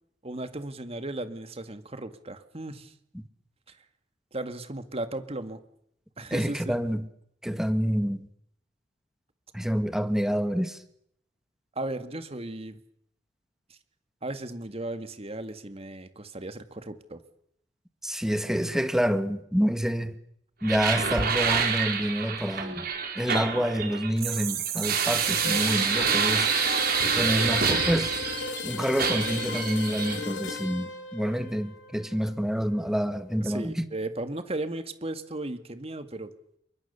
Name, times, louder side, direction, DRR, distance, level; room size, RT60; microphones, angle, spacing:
voice 1, 0.2-2.9 3.7-3.8 4.3-5.6 6.2-6.8 11.8-12.8 14.2-17.2 26.0-26.2 33.4-36.3, right 2 dB, 30° right, 2.1 m, -36 dB
voice 2, 6.3-7.1 7.4-8.3 9.5-10.8 18.0-20.2 20.6-22.9 23.2-26.5 27.2-28.2 28.6-33.9, equal, 5° right, 1.7 m, -27 dB
sound 1, 20.6-28.6 29.0-30.2, right 6 dB, 55° right, 4.7 m, -27 dB
sound 2, 25.2-33.1, left 3 dB, 70° left, 4.2 m, -36 dB
28.5 x 24.0 x 7.1 m
head